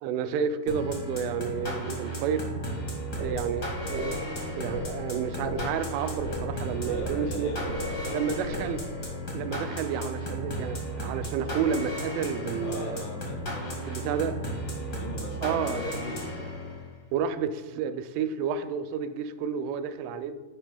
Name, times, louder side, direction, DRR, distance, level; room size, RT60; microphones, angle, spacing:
voice 1, 0.0-2.5 3.2-4.2 4.5-7.5 8.1-8.8 9.3-13.0 13.9-14.3 15.4-15.8 17.1-20.3, right 7 dB, 90° right, 3.0 m, -30 dB
sound 1, 0.7-17.0, right 1 dB, 60° left, 1.0 m, -34 dB
sound 2, 3.2-9.2, equal, 50° right, 3.1 m, -39 dB
voice 2, 6.8-8.4 12.6-14.3 14.6-16.5, left 2 dB, 80° left, 4.2 m, -40 dB
10.5 x 8.9 x 2.2 m
omnidirectional pair, 5.4 m